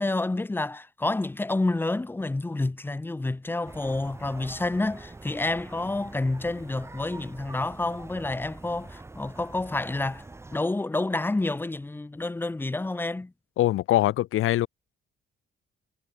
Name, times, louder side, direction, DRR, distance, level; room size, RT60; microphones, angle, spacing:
voice 1, 0.0-10.2 10.5-13.3, left 2 dB, 10° left, 1.8 m, -29 dB
sound 1, 3.6-10.6, right 2 dB, 10° right, 7.6 m, -45 dB
voice 2, 13.6-14.7, left 14 dB, 90° left, 2.4 m, -23 dB
cardioid pair, 165°, 21 cm